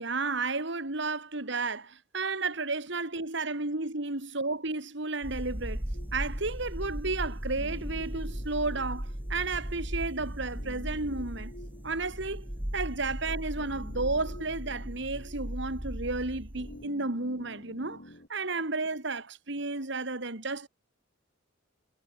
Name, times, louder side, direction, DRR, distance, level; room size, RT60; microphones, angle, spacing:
voice 1, 0.0-5.8 6.1-11.5 11.8-12.4 12.7-18.0 18.3-20.7, right 3 dB, 65° right, 2.6 m, -32 dB
sound 1, 5.2-16.8, equal, 10° right, 1.0 m, -37 dB
sound 2, 5.9-18.3, left 1 dB, 55° left, 5.3 m, -52 dB
head